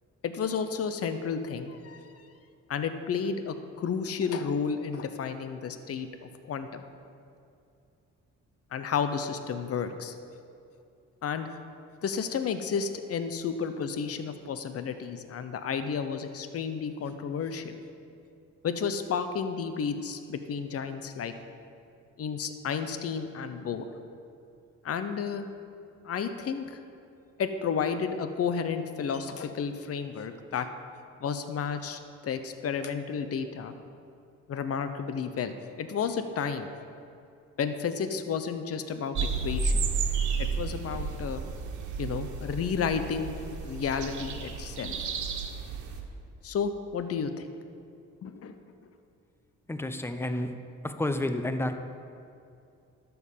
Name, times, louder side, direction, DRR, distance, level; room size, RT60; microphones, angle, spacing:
voice 1, 0.2-2.3 2.7-6.8 8.7-10.1 11.2-11.5 12.0-17.7 18.6-21.3 22.2-23.8 24.8-25.5 26.0-26.8 27.4-30.7 31.2-33.7 34.5-35.5 35.8-36.7 37.6-39.9 40.4-41.4 42.0-43.3 43.6-45.2 46.4-47.5 48.2-48.6, left 6 dB, 50° left, 9 dB, 0.9 m, -32 dB
sound 1, 39.2-46.0, right 4 dB, 75° right, 1.6 m, -32 dB
voice 2, 49.7-50.5 50.8-51.8, left 1 dB, 10° left, 8 dB, 0.8 m, -30 dB
12.0 x 7.0 x 7.4 m, 2.5 s
cardioid pair, 90°, 30 cm